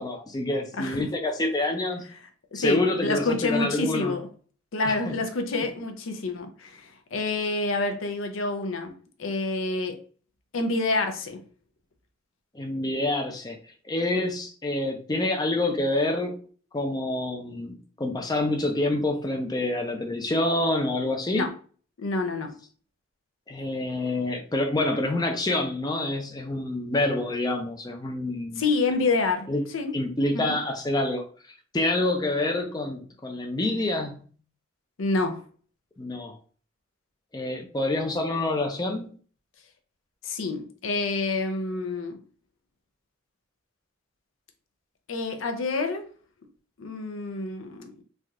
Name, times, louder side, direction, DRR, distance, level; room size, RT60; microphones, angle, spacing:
voice 1, 0.0-2.0 2.5-4.1 4.8-5.1 12.5-13.6 13.8-16.4 16.7-21.5 23.5-28.6 29.5-29.6 29.9-31.2 31.7-34.2 36.0-36.4 37.3-39.1, left 2 dB, 20° left, 0.4 m, -27 dB
voice 2, 0.8-1.1 2.5-4.2 4.7-8.9 9.2-9.9 10.5-11.4 21.3-21.5 22.0-22.5 28.6-29.5 29.7-29.9 30.3-30.4 35.0-35.4 40.2-42.2 45.1-46.0 46.8-48.0, left 3 dB, 80° left, 0.6 m, -27 dB
3.2 x 2.7 x 2.4 m
head